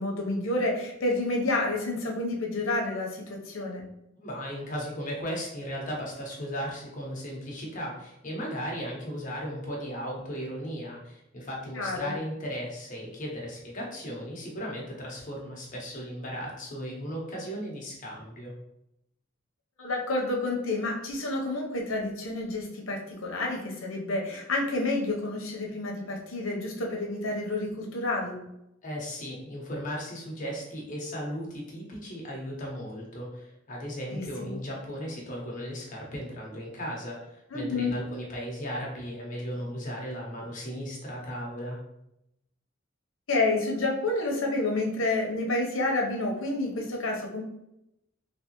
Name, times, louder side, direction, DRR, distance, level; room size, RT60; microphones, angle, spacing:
voice 1, 0.0-3.8 11.7-12.1 19.8-28.4 34.1-34.6 37.5-38.0 43.3-47.4, left 2 dB, 90° left, 0 dB, 0.8 m, -29 dB
voice 2, 4.2-18.5 28.8-41.8, equal, 40° left, -2 dB, 1.0 m, -36 dB
3.3 x 2.8 x 2.9 m, 0.83 s
head